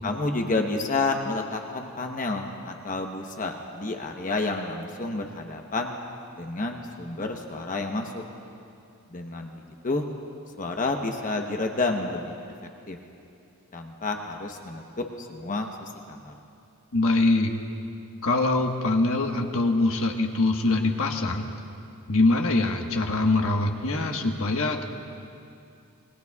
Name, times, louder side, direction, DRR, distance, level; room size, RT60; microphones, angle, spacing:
voice 1, 0.0-6.0 6.4-8.2 9.1-10.0 10.6-12.3 12.9-13.0 13.7-16.3, left 3 dB, 35° left, 3 dB, 1.0 m, -30 dB
voice 2, 16.9-17.5 18.2-21.5 22.1-24.8, left 2 dB, 65° left, 2 dB, 1.4 m, -23 dB
27.0 x 22.0 x 2.4 m, 2.6 s
head